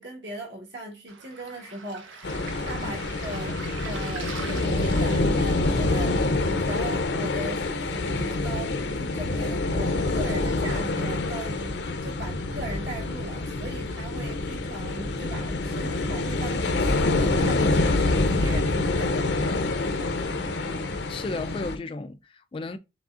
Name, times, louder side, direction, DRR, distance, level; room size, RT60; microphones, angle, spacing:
voice 1, 0.0-19.5, right 1 dB, 65° right, 1.5 m, -39 dB
Waves surf, 1.1-7.1, right 5 dB, 90° right, 0.9 m, -43 dB
sound 1, 2.2-21.8, left 2 dB, 60° left, 0.6 m, -26 dB
voice 2, 20.4-22.8, left 3 dB, 30° left, 0.3 m, -35 dB
5.1 x 3.3 x 2.4 m
head